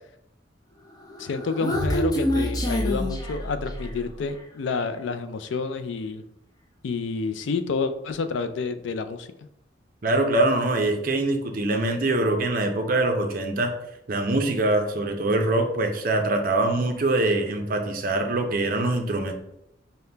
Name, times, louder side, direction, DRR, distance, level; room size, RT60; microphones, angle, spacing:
Human voice, 1.1-4.1, left 1 dB, 20° left, 0.4 m, -27 dB
voice 1, 1.2-6.2 6.8-9.3, left 4 dB, 75° left, 9 dB, 0.4 m, -29 dB
voice 2, 10.0-13.7 14.1-19.3, right 2 dB, 50° right, 4 dB, 0.5 m, -23 dB
5.5 x 2.2 x 3.3 m, 0.81 s
head